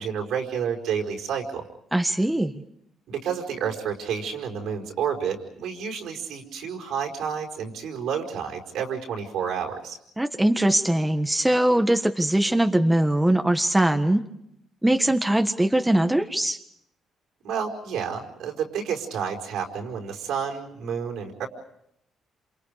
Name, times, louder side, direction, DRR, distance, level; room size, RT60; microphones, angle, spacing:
voice 1, 0.0-1.6 3.1-10.0 17.4-21.5, right 7 dB, 80° right, 2 dB, 4.8 m, -30 dB
voice 2, 1.9-2.5 10.2-14.2 14.8-16.6, right 1 dB, 10° right, 6 dB, 1.4 m, -21 dB
28.0 x 28.0 x 5.1 m, 0.75 s
cardioid pair, 90°, 0 cm